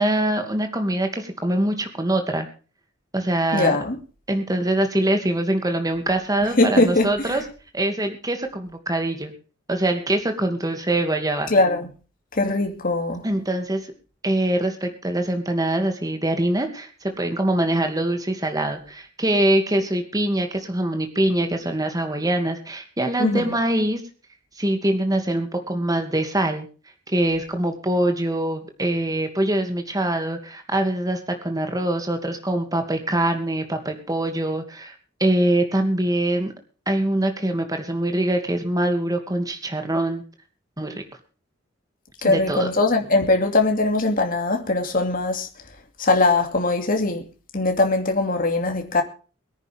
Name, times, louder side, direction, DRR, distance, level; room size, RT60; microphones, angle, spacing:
voice 1, 0.0-2.5 3.1-3.7 4.3-7.4 7.7-9.3 9.7-11.5 13.2-13.8 14.2-24.0 24.6-26.7 27.1-34.9 35.2-36.5 36.9-40.2 40.8-41.0 42.2-42.7, right 1 dB, 20° right, 2.5 m, -23 dB
voice 2, 3.5-4.0 6.6-7.4 11.5-11.9 12.3-13.3 23.2-23.5 42.2-45.5 46.0-47.3 47.5-49.0, left 2 dB, 45° left, 2.7 m, -21 dB
23.0 x 10.0 x 3.6 m
head